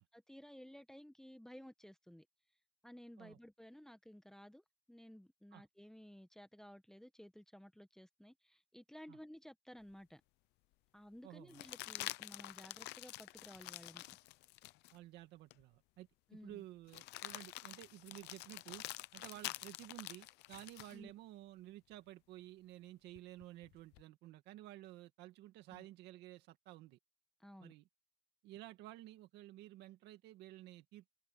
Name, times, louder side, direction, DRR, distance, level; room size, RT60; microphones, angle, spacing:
voice 1, 0.0-2.3 2.8-10.2 10.9-14.1 16.3-16.6 20.9-21.1 25.7-25.8 27.4-27.7, equal, 5° left, 1.2 m, -56 dB
sound 1, 9.9-10.0 11.5-15.0 15.5-15.6 16.9-21.0 23.1-24.0, left 19 dB, 85° left, 0.7 m, -48 dB
voice 2, 11.2-11.6 14.9-18.8 19.1-27.0 27.6-27.8 28.4-31.1, right 15 dB, 90° right, 2.1 m, -53 dB
cardioid pair, 110°, 17 cm